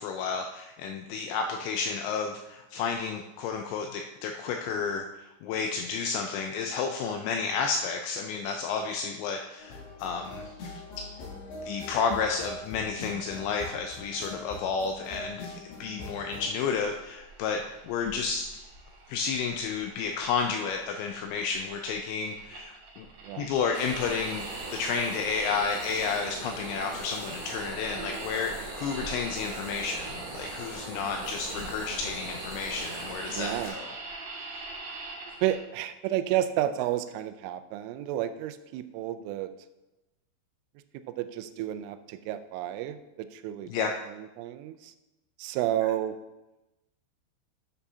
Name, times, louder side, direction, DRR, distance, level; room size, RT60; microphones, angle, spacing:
voice 1, 0.0-10.5 11.0-11.1 11.6-18.5 19.1-23.1 23.4-33.9 34.5-34.6 43.7-44.0, left 5 dB, 85° left, 4 dB, 2.5 m, -31 dB
sound 1, 9.6-16.5, left 2 dB, 70° left, 4.9 m, -42 dB
sound 2, 16.5-35.6, right 3 dB, 55° right, 1.8 m, -44 dB
sound 3, 23.7-33.7, right 2 dB, 30° right, 2.3 m, -40 dB
voice 2, 33.3-33.8 35.4-39.5 41.1-44.9 45.4-46.2, right 12 dB, 85° right, 11 dB, 3.0 m, -31 dB
12.5 x 6.9 x 2.7 m, 1.0 s
omnidirectional pair, 5.6 m